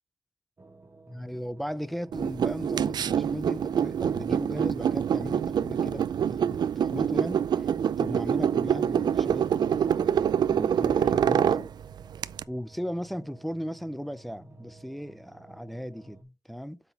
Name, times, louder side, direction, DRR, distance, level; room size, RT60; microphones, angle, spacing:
sound 1, 0.6-16.2, right 3 dB, 35° right, 1.7 m, -54 dB
voice 1, 1.1-7.7 8.0-11.7 12.5-16.8, equal, ahead, 0.5 m, -37 dB
sound 2, 2.1-12.4, right 8 dB, 80° right, 0.4 m, -26 dB
8.2 x 6.0 x 4.0 m
wide cardioid pair, 125°, 7 cm